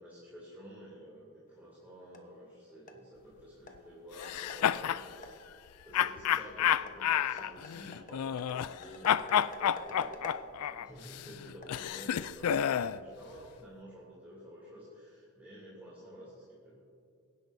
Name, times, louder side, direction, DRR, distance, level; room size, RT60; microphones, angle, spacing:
voice 1, 0.0-16.8, equal, 10° right, -9 dB, 2.9 m, -51 dB
sound 1, 1.5-13.3, left 2 dB, 35° left, 1.1 m, -52 dB
sound 2, 4.2-5.0 5.9-8.8 9.0-13.0, left 9 dB, 85° left, 0.4 m, -30 dB
25.5 x 10.5 x 2.7 m, 2.5 s
head